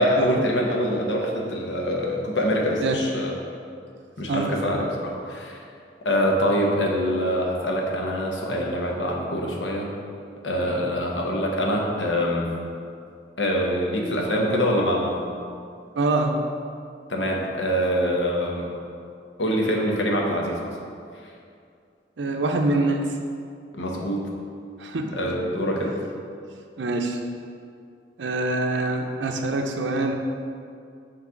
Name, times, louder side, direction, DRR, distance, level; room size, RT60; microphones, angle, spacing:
voice 1, 0.0-3.3 4.2-5.6 6.0-9.9 10.4-12.5 13.4-15.2 17.1-18.7 19.4-20.6 23.8-24.3 25.1-25.9, equal, 85° left, -1 dB, 1.0 m, -24 dB
voice 2, 16.0-16.4 22.2-23.1 24.8-25.2 26.8-27.2 28.2-30.2, right 2 dB, 85° right, 4 dB, 0.5 m, -25 dB
6.0 x 3.3 x 5.7 m, 2.4 s
head